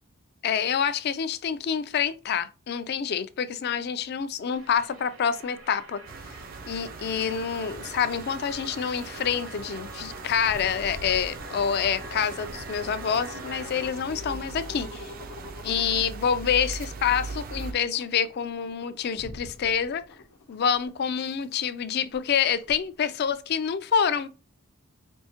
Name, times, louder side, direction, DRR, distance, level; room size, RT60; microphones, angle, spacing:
voice 1, 0.4-6.0 6.7-15.1 15.6-20.0 20.5-24.3, left 7 dB, 45° left, 0.3 m, -27 dB
sound 1, 4.5-23.4, left 2 dB, 80° left, 0.8 m, -48 dB
sound 2, 4.5-13.9, right 1 dB, 70° right, 0.8 m, -45 dB
sound 3, 6.1-17.7, right 4 dB, 40° right, 0.4 m, -40 dB
4.5 x 2.7 x 2.8 m
head